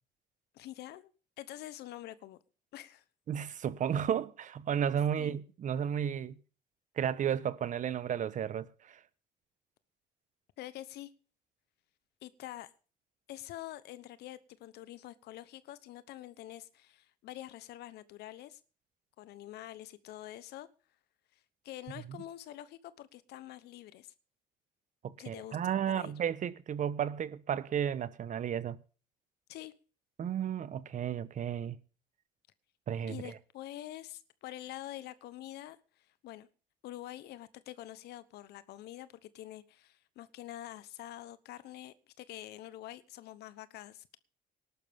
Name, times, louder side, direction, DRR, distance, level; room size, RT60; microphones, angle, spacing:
voice 1, 0.5-1.1 1.4-2.4 2.7-3.0 5.2-5.4 10.6-11.1 12.2-12.7 13.3-18.6 19.2-20.7 21.3-21.4 21.6-24.1 25.2-25.6 25.9-26.1 29.5-29.7 33.1-36.5 36.8-44.2, left 14 dB, 75° left, 1.1 m, -46 dB
voice 2, 3.3-6.4 7.0-9.0 25.0-28.8 30.2-31.8 32.9-33.2, right 9 dB, 50° right, 1.2 m, -33 dB
18.5 x 11.5 x 3.6 m
cardioid pair, 110°, 17 cm